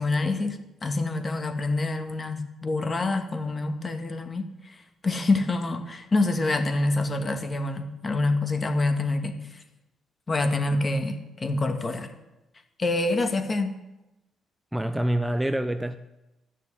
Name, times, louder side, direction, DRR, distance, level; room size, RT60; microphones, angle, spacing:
voice 1, 0.0-4.5 5.0-9.4 10.3-12.1 12.8-13.8, left 2 dB, 30° left, 7 dB, 1.8 m, -26 dB
voice 2, 14.7-16.0, right 1 dB, 5° right, 10 dB, 0.6 m, -26 dB
12.5 x 6.6 x 9.7 m, 0.99 s
cardioid pair, 90°, 0 cm